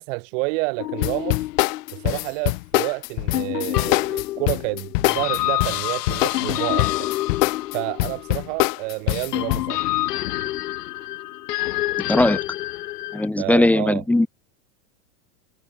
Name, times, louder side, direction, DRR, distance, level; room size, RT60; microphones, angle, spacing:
voice 1, 0.0-1.4 1.9-7.1 7.7-9.8 13.4-14.0, right 28 dB, 50° right, 2.4 m, -29 dB
sound 1, 0.8-2.5 3.3-8.7 9.3-13.3, left 16 dB, 85° left, 1.3 m, -28 dB
sound 2, 1.0-9.7, left 24 dB, 55° left, 4.4 m, -24 dB
voice 2, 12.0-12.4 13.1-14.3, left 2 dB, 5° left, 0.7 m, -19 dB
supercardioid pair, 150°, 46 cm